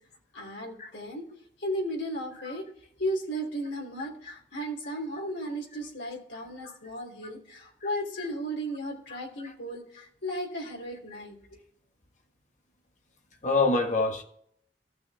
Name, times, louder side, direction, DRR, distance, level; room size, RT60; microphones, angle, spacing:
voice 1, 0.3-1.3 1.6-2.6 3.0-11.4, equal, 75° left, 3.2 m, -35 dB
voice 2, 13.4-14.2, left 3 dB, 40° left, 1.4 m, -27 dB
15.0 x 6.1 x 3.5 m
head